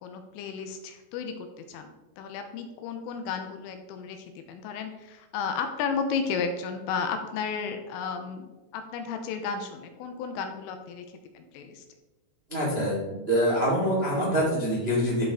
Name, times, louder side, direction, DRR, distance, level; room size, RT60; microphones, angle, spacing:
voice 1, 0.0-11.1 11.3-11.8, left 6 dB, 85° left, 6 dB, 3.3 m, -33 dB
voice 2, 12.5-15.2, equal, 40° right, -6 dB, 0.8 m, -25 dB
13.0 x 4.9 x 3.7 m, 1.1 s
omnidirectional pair, 6.0 m